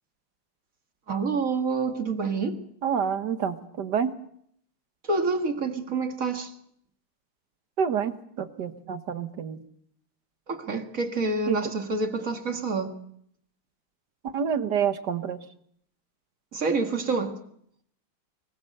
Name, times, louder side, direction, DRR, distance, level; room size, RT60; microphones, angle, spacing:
voice 1, 1.1-2.6 5.0-6.5 10.5-12.9 16.5-17.4, right 3 dB, 40° right, 2.1 m, -27 dB
voice 2, 2.8-4.1 7.8-9.6 11.5-11.6 14.2-15.4, right 7 dB, 55° right, 1.7 m, -28 dB
24.5 x 22.0 x 6.5 m
omnidirectional pair, 2.3 m